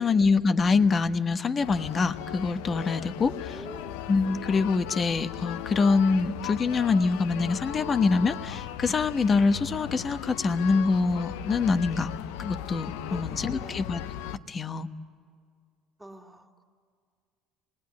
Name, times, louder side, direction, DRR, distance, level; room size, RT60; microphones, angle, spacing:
voice 1, 0.0-3.6 4.1-12.1 12.4-14.0 14.5-14.9, left 4 dB, 35° left, 10 dB, 1.1 m, -25 dB
sound 1, 1.6-14.4, left 11 dB, 80° left, 0.6 m, -37 dB
voice 2, 3.2-4.0 13.1-13.8 16.0-16.6, right 1 dB, 5° right, 0 dB, 2.6 m, -45 dB
27.0 x 19.5 x 9.6 m, 2.1 s
supercardioid pair, 80°, 0 cm